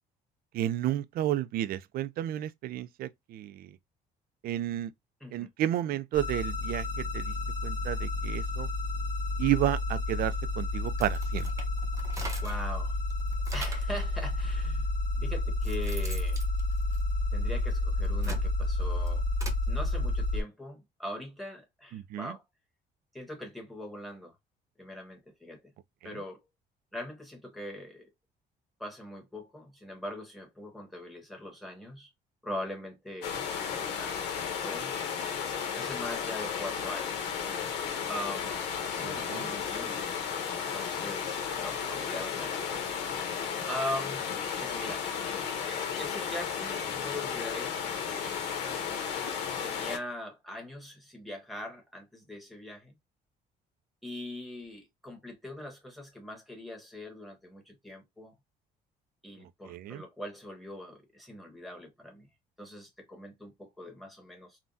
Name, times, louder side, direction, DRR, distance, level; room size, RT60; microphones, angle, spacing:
voice 1, 0.5-3.7 4.4-4.9 5.3-7.3 7.6-8.7 9.4-11.5 21.9-22.3 39.0-39.5 59.7-60.0, right 13 dB, 60° right, 0.4 m, -32 dB
sound 1, 6.1-20.4, left 2 dB, 45° left, 1.2 m, -30 dB
sound 2, 10.8-12.7 13.1-14.0 14.8-14.9 15.4-17.5 18.0-19.6, right 2 dB, 20° right, 0.8 m, -43 dB
voice 2, 12.4-13.0 13.5-14.8 15.2-16.4 17.3-19.2 19.7-22.4 23.1-24.3 24.8-25.6 26.0-26.4 26.9-28.1 28.8-32.1 32.4-34.2 34.6-34.9 35.8-37.3 38.1-38.6 39.0-40.0 40.7-42.6 43.7-44.2 44.6-45.1 45.6-48.4 49.6-52.9 54.0-58.3 59.2-62.3 62.6-64.6, left 1 dB, ahead, 1.3 m, -41 dB
sound 3, 33.2-50.0, left 7 dB, 85° left, 0.8 m, -34 dB
3.5 x 2.2 x 2.5 m
cardioid pair, 110°, 17 cm